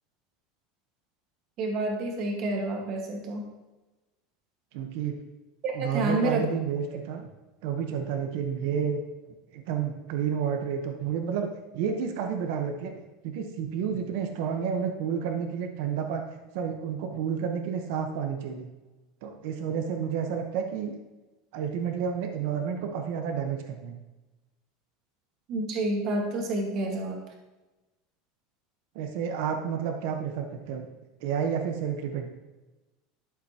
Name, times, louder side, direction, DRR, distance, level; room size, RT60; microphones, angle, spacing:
voice 1, 1.6-3.4 5.6-6.5 25.5-27.2, right 2 dB, 35° right, 1 dB, 1.6 m, -29 dB
voice 2, 4.7-5.2 5.7-7.3 7.6-9.0 9.5-11.5 11.7-16.2 16.5-18.7 19.2-21.0 21.5-24.0 28.9-30.9 31.2-32.3, right 7 dB, 55° right, 4 dB, 1.0 m, -30 dB
12.0 x 7.2 x 2.9 m, 1.1 s
supercardioid pair, 175°, 0 cm